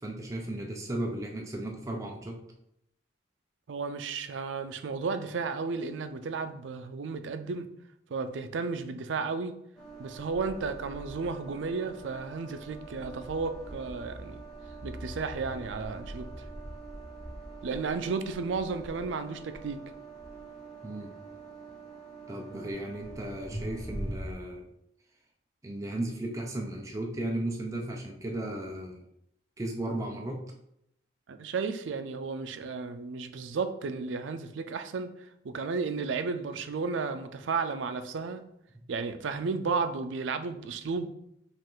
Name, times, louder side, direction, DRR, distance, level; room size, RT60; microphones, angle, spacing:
voice 1, 0.0-2.4 20.8-21.2 22.3-24.7 25.6-29.1 29.6-30.4, right 1 dB, 15° right, 0.4 m, -35 dB
voice 2, 3.7-7.7 8.1-9.5 10.0-14.4 14.8-16.3 17.6-19.8 31.3-38.4 38.9-41.1, right 4 dB, 85° right, 0.4 m, -33 dB
sound 1, 9.7-24.3, right 2 dB, ahead, 1.1 m, -43 dB
5.3 x 2.5 x 3.6 m
head